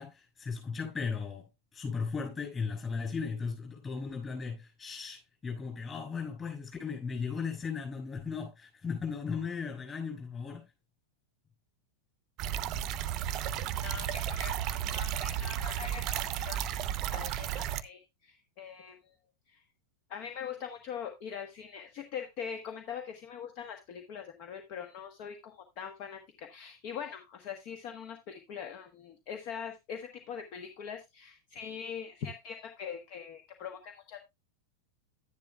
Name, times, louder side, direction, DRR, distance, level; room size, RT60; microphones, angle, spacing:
voice 1, 0.0-10.6, left 5 dB, 20° left, 6.7 m, -36 dB
sound 1, 12.4-17.8, right 10 dB, 35° right, 0.7 m, -33 dB
voice 2, 13.8-19.0 19.5-19.6 20.1-34.2, left 7 dB, 45° left, 1.3 m, -42 dB
11.5 x 10.5 x 2.3 m
figure-of-eight pair, 90°, 0 cm